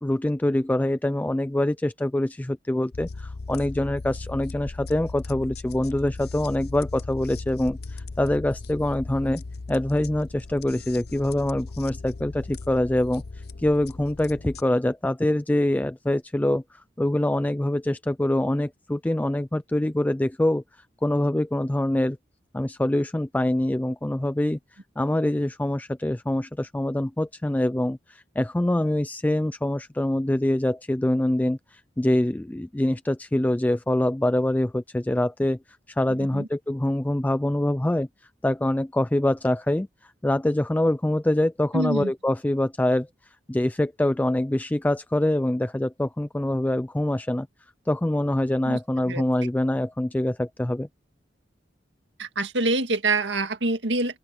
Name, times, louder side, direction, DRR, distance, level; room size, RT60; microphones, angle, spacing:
voice 1, 0.0-9.4 9.7-20.6 21.0-22.2 22.5-24.6 25.0-35.6 35.9-38.1 38.4-43.1 43.5-47.5 47.9-50.9, left 1 dB, 10° left, 0.3 m, -25 dB
sound 1, 2.9-14.6, left 3 dB, 60° left, 0.7 m, -37 dB
voice 2, 41.7-42.1 48.6-48.8 49.1-49.2 52.2-54.2, right 2 dB, 90° right, 1.9 m, -26 dB
open air
head